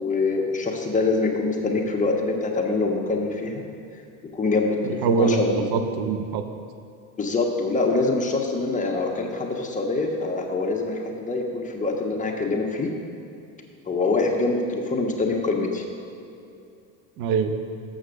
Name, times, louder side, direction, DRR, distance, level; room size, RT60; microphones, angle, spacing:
voice 1, 0.0-3.6 4.3-5.6 7.2-12.9 13.9-15.8, left 3 dB, 20° left, 0 dB, 1.2 m, -24 dB
voice 2, 4.8-6.4 17.2-17.6, right 5 dB, 60° right, 8 dB, 0.8 m, -23 dB
7.1 x 6.3 x 6.4 m, 2.6 s
supercardioid pair, 95°, 42 cm